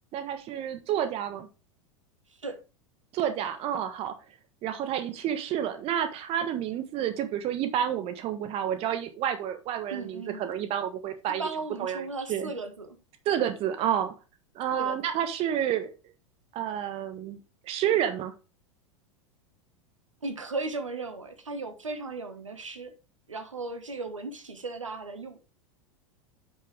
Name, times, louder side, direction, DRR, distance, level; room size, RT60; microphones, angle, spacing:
voice 1, 0.1-1.5 3.1-4.1 4.6-11.5 11.8-12.5 13.2-14.1 14.5-15.9 16.5-18.3, right 10 dB, 40° right, 1.3 m, -30 dB
voice 2, 9.9-10.5 11.4-13.0 14.7-15.0 20.2-22.9 23.3-25.4, right 3 dB, 80° right, 1.5 m, -36 dB
9.0 x 5.8 x 3.4 m
figure-of-eight pair, 85°, 16 cm